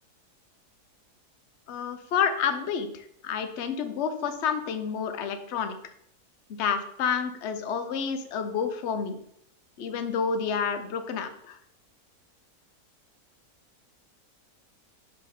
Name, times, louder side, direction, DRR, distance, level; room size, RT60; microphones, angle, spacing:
voice 1, 1.7-5.7 6.6-9.2 9.8-11.6, left 6 dB, 55° left, 9 dB, 0.9 m, -29 dB
6.7 x 4.3 x 5.3 m, 0.70 s
omnidirectional pair, 1.7 m